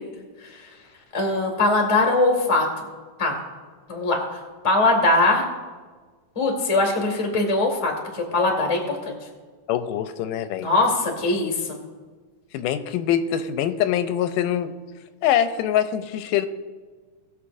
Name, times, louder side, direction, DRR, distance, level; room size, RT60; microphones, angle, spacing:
voice 1, 1.1-2.7 3.2-3.3 3.9-4.2 4.6-5.5 6.3-9.1 10.6-11.5, left 2 dB, 15° left, 1 dB, 1.1 m, -21 dB
voice 2, 9.7-10.7 12.5-14.7 15.2-16.5, left 10 dB, 90° left, 11 dB, 2.2 m, -24 dB
20.0 x 7.0 x 2.6 m, 1.4 s
omnidirectional pair, 3.7 m